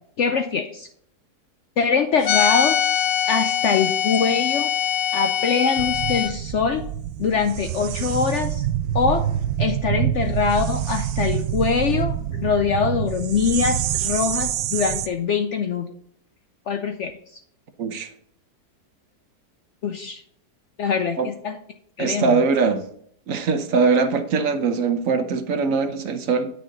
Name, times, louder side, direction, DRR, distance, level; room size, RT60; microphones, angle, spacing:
voice 1, 0.2-0.9 1.8-2.8 3.3-4.7 5.1-6.8 7.2-8.7 8.9-9.3 9.6-15.9 16.7-17.4 19.8-20.2 20.8-21.6 22.0-22.4, left 6 dB, 65° left, 6 dB, 0.7 m, -23 dB
sound 1, 2.2-6.3, left 9 dB, 80° left, 1.4 m, -22 dB
sound 2, 5.8-15.1, right 11 dB, 85° right, 1.2 m, -26 dB
voice 2, 22.0-22.9 23.3-26.5, right 5 dB, 55° right, 8 dB, 1.2 m, -21 dB
9.2 x 6.5 x 3.9 m, 0.65 s
omnidirectional pair, 1.8 m